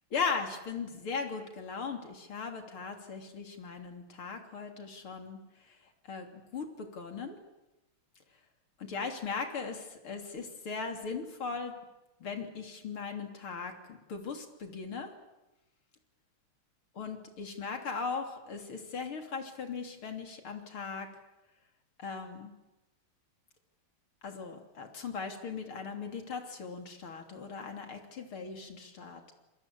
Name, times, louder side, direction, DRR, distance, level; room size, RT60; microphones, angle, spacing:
voice 1, 0.1-7.4 8.8-11.7 12.2-15.1 17.0-21.1 22.0-22.5 24.2-29.3, left 5 dB, 70° left, 5 dB, 4.0 m, -38 dB
27.5 x 22.0 x 8.6 m, 1.0 s
omnidirectional pair, 2.4 m